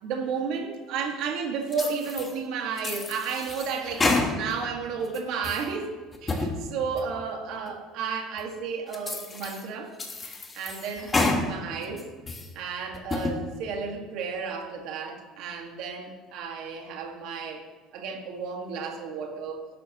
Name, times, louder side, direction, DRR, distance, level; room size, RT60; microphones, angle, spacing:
voice 1, 0.0-5.9 6.2-9.9 10.5-12.1 12.5-19.7, right 5 dB, 55° right, 2 dB, 1.7 m, -33 dB
sound 1, 1.7-2.3 2.8-4.7 5.1-5.7 6.1-6.5 7.0-7.1 7.7-7.8 8.4-8.5 8.9-9.6 10.0-11.4 11.8-12.5 12.9-13.4, left 3 dB, 15° left, 1.2 m, -29 dB
18.5 x 11.5 x 3.0 m, 1.5 s
cardioid pair, 175°, 0 cm